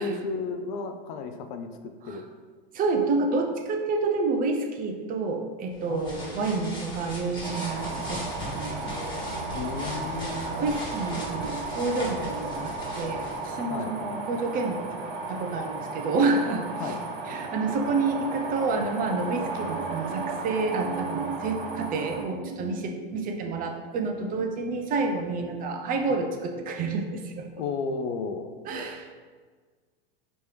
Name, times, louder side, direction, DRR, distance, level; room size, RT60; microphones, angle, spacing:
voice 1, 0.0-1.7 2.0-2.3 5.9-6.7 9.5-10.6 11.1-11.2 13.6-13.9 16.8-17.0 26.1-26.2 27.6-28.5, left 4 dB, 55° left, 6 dB, 0.5 m, -34 dB
voice 2, 2.7-8.8 10.5-14.8 15.3-17.0 17.3-27.4 28.6-29.2, right 3 dB, 30° right, 3 dB, 0.5 m, -29 dB
sound 1, 5.7-13.5, left 1 dB, 15° left, 1.4 m, -38 dB
sound 2, 7.4-22.2, right 3 dB, 70° right, 1.2 m, -35 dB
5.4 x 2.9 x 3.2 m, 1.5 s
hypercardioid pair, 120°, 30 cm